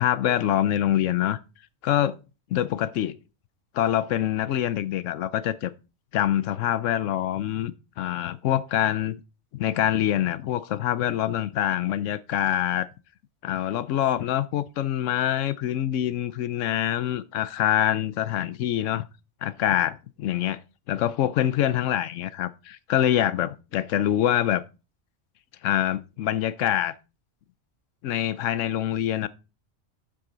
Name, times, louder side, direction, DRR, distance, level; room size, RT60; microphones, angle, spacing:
voice 1, 0.0-1.4 1.8-2.2 2.5-3.1 3.7-5.7 6.1-7.7 8.0-9.2 9.5-12.9 13.4-19.1 19.4-20.6 20.9-24.6 25.6-26.9 28.0-29.3, left 11 dB, 80° left, 1.0 m, -25 dB
8.5 x 7.8 x 3.9 m
omnidirectional pair, 1.3 m